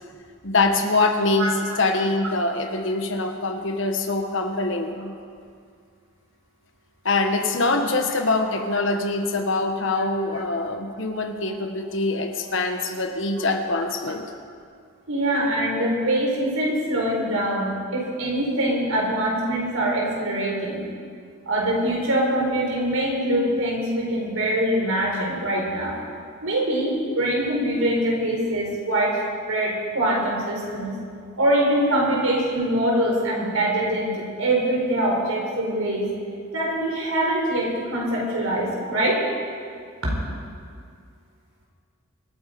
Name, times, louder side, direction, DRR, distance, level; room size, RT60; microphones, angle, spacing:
voice 1, 0.4-5.1 7.0-14.2, left 3 dB, 60° left, 5 dB, 1.3 m, -24 dB
voice 2, 1.4-1.8 9.9-10.0 12.4-12.5 15.1-20.8 21.5-26.0 26.4-29.2 29.5-30.9 31.4-36.1 36.5-39.2 40.1-40.2, right 1 dB, 85° right, -2 dB, 4.5 m, -23 dB
25.0 x 8.9 x 5.2 m, 2.2 s
head